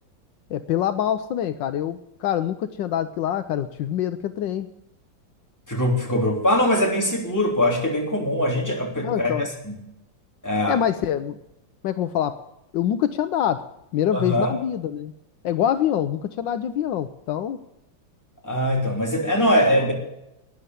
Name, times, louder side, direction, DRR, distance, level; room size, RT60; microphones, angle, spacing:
voice 1, 0.5-4.7 9.0-9.5 10.7-11.4 11.8-12.4 12.7-15.1 15.4-17.6 19.8-19.9, left 10 dB, 75° left, 10 dB, 1.4 m, -25 dB
voice 2, 5.7-9.7 10.4-10.8 14.1-14.5 18.4-19.9, left 1 dB, 10° left, -1 dB, 3.3 m, -22 dB
12.5 x 9.9 x 9.1 m, 0.87 s
omnidirectional pair, 2.1 m